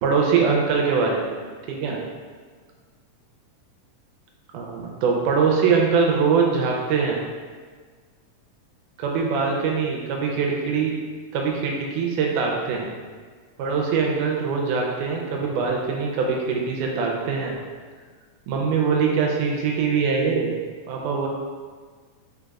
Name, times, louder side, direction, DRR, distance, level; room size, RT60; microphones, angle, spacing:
voice 1, 0.0-1.3 1.7-2.0 4.5-7.2 9.0-10.9 11.3-12.9 13.6-17.6 18.5-20.5 20.9-21.3, right 5 dB, 80° right, -1 dB, 2.0 m, -22 dB
5.1 x 4.5 x 2.3 m, 1.6 s
omnidirectional pair, 3.7 m